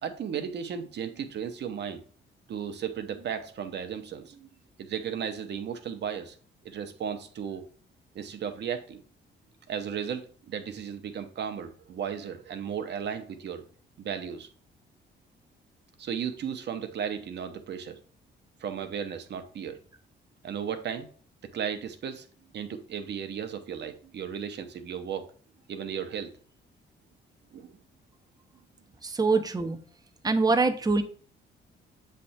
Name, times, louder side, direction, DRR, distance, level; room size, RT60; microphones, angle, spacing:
voice 1, 0.0-2.0 2.5-4.5 4.8-6.3 6.6-7.6 8.1-9.0 9.7-13.6 14.0-14.5 16.0-18.0 18.6-19.8 20.4-21.1 21.4-22.2 22.5-25.3 25.7-26.3 27.5-27.8, right 8 dB, 60° right, 8 dB, 1.0 m, -35 dB
voice 2, 29.0-29.8 30.2-31.0, right 3 dB, 20° right, 7 dB, 0.8 m, -24 dB
7.5 x 3.4 x 4.2 m, 0.43 s
cardioid pair, 90°, 20 cm